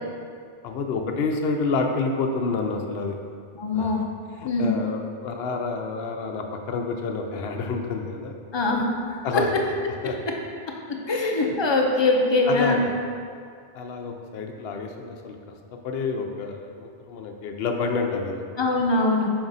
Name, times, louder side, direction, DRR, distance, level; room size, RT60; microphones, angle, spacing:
voice 1, 0.6-3.2 3.7-4.0 4.3-8.4 8.7-8.8 9.2-9.7 10.0-10.2 11.4-11.6 12.5-12.9 13.7-15.4 15.8-18.4, left 4 dB, 65° left, 3 dB, 0.8 m, -29 dB
voice 2, 3.6-4.0 4.4-4.8 8.5-8.9 11.1-12.8 18.6-19.3, left 2 dB, 40° left, 1 dB, 0.4 m, -22 dB
6.0 x 4.3 x 4.0 m, 2.1 s
omnidirectional pair, 1.2 m